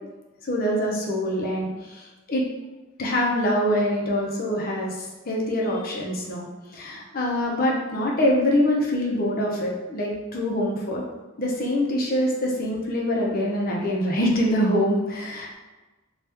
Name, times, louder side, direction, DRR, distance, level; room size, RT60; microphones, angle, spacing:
voice 1, 0.4-2.4 3.0-6.5 6.7-11.0 11.4-15.5, left 1 dB, 50° left, -2 dB, 0.6 m, -24 dB
2.9 x 2.3 x 3.3 m, 1.2 s
head